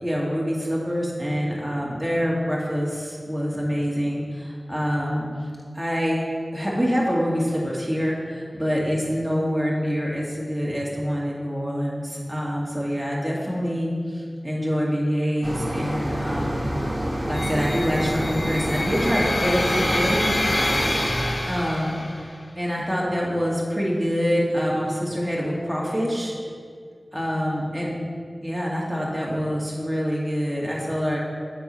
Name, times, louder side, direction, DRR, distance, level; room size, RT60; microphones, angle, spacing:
voice 1, 0.0-5.5 5.7-6.2 6.5-16.7 17.3-20.3 21.5-22.0 22.6-26.3 27.1-27.9 28.4-31.2, equal, ahead, -5 dB, 1.9 m, -25 dB
sound 1, 15.4-21.1, right 1 dB, 20° right, 1.2 m, -27 dB
sound 2, 17.3-22.4, left 1 dB, 40° left, 0.7 m, -27 dB
6.9 x 4.6 x 5.5 m, 2.2 s
wide cardioid pair, 45°, 0 cm